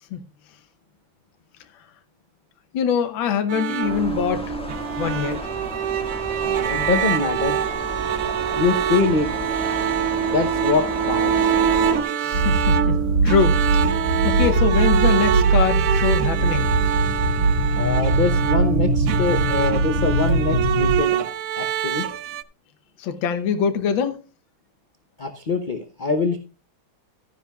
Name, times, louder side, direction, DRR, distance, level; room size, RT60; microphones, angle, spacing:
voice 1, 2.7-4.5 5.0-5.4 12.2-16.7 23.0-24.2, left 7 dB, 75° left, 1.7 m, -24 dB
sound 1, 3.5-22.4, right 9 dB, 85° right, 0.7 m, -25 dB
sound 2, 3.8-12.0, left 1 dB, 5° left, 1.7 m, -33 dB
voice 2, 6.4-7.6 8.6-9.3 10.3-11.6 17.7-21.2 21.6-22.1 25.2-26.4, left 4 dB, 55° left, 0.5 m, -24 dB
sound 3, 12.3-21.0, right 2 dB, 65° right, 7.8 m, -21 dB
14.0 x 10.0 x 2.3 m
omnidirectional pair, 2.2 m